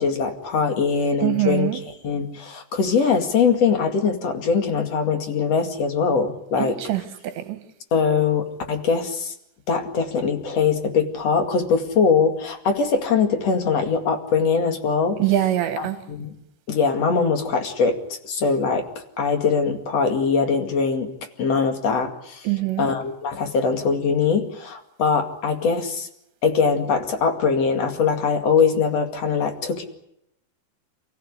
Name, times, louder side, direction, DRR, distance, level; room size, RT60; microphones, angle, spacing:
voice 1, 0.0-1.7 2.0-6.8 7.9-9.3 9.7-15.2 15.8-16.3 16.7-18.0 18.2-18.9 19.2-21.1 21.4-22.5 22.8-26.1 26.4-29.8, left 5 dB, 45° left, 2.8 m, -22 dB
voice 2, 1.2-1.8 6.6-7.6 15.2-16.0 22.4-22.9, right 14 dB, 85° right, 3.9 m, -24 dB
29.0 x 15.5 x 9.7 m
omnidirectional pair, 5.0 m